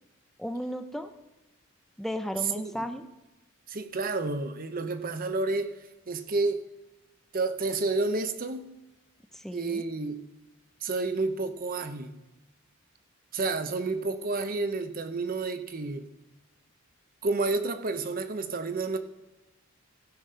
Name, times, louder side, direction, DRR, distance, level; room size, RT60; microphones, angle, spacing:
voice 1, 0.4-1.1 2.0-3.0 9.3-9.8, equal, ahead, 8 dB, 0.6 m, -34 dB
voice 2, 3.7-5.7 6.1-6.6 7.3-8.7 9.5-10.3 10.8-12.2 13.3-16.1 17.2-19.0, right 3 dB, 40° right, 9 dB, 0.7 m, -30 dB
15.5 x 5.4 x 5.5 m, 1.1 s
head